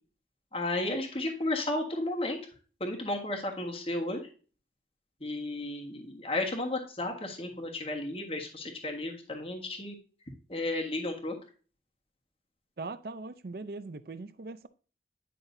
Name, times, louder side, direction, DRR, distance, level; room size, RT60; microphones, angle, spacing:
voice 1, 0.5-2.4 2.8-4.2 5.2-10.0 10.5-11.3, left 2 dB, 30° left, 1.4 m, -33 dB
voice 2, 12.8-14.7, right 3 dB, 55° right, 0.5 m, -40 dB
9.9 x 5.8 x 2.7 m
head